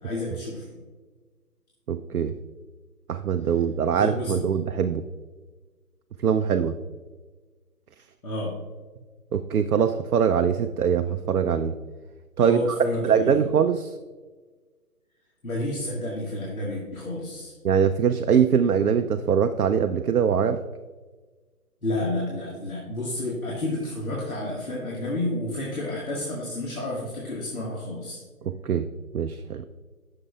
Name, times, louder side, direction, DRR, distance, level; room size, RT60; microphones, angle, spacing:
voice 1, 0.0-0.8 3.9-4.4 8.2-8.5 12.4-13.4 15.4-17.5 21.8-28.2, left 1 dB, 65° left, -4 dB, 1.9 m, -30 dB
voice 2, 1.9-2.3 3.1-5.0 6.2-6.8 9.3-11.7 12.4-12.6 13.0-13.9 17.6-20.6 28.4-28.9 29.1-29.6, right 7 dB, 80° right, 9 dB, 0.5 m, -22 dB
10.5 x 6.6 x 2.4 m, 1.4 s
figure-of-eight pair, 150°, 45 cm